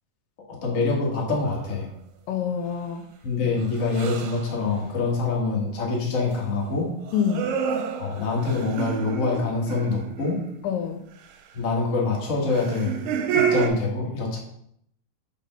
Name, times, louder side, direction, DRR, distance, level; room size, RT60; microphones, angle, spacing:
voice 1, 0.5-1.9 3.2-6.9 8.0-10.4 11.5-13.0 13.3-14.4, left 3 dB, 55° left, -3 dB, 0.8 m, -25 dB
sound 1, 1.5-1.8 3.9-4.5 7.1-10.7 12.5-13.7, right 7 dB, 90° right, 2.4 m, -29 dB
voice 2, 2.3-3.0 7.1-7.5 10.6-11.0, left 7 dB, 85° left, 6 dB, 2.2 m, -26 dB
5.1 x 4.2 x 5.2 m, 0.71 s
omnidirectional pair, 4.0 m